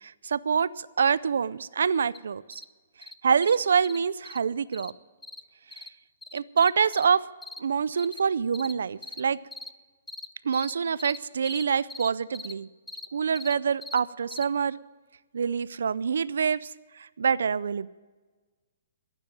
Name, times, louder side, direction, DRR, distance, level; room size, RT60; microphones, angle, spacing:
voice 1, 0.0-2.6 3.2-4.9 6.3-7.3 7.6-9.4 10.4-12.7 13.1-14.8 15.3-16.7 17.0-17.9, right 6 dB, 85° right, 19 dB, 0.4 m, -26 dB
sound 1, 2.1-2.2 2.5-2.6 3.0-3.1 3.4-3.6 3.8-4.0 4.2-4.4 4.7-4.9 5.2-5.4 5.7-5.9 6.2-7.0 7.4-7.6 8.0-8.2 8.5-8.7 9.0-9.2 9.5-9.7 10.1-10.3 10.5-10.7 11.0-11.2 11.4-11.6 11.9-12.1 12.3-12.5 12.9-13.1 13.3-13.5 13.8-14.0 14.3-14.4, left 2 dB, 5° left, 0.3 m, -40 dB
12.5 x 9.0 x 8.9 m, 1.3 s
hypercardioid pair, 170°, 0 cm